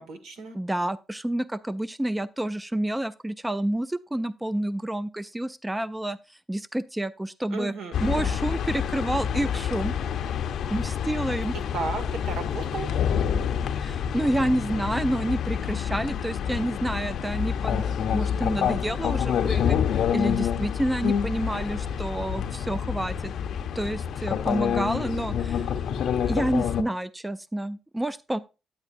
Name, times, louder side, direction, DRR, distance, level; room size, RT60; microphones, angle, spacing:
voice 1, 0.0-0.6 7.5-8.3 11.5-13.0, right 4 dB, 85° right, 1.7 m, -34 dB
voice 2, 0.5-7.7 8.0-9.9 10.7-11.5 13.7-19.8 20.1-23.3 23.8-25.8 26.3-28.4, right 1 dB, 10° right, 0.3 m, -29 dB
sound 1, 7.9-26.8, left 8 dB, 70° left, 0.6 m, -27 dB
9.5 x 9.0 x 2.5 m
cardioid pair, 90°, 0 cm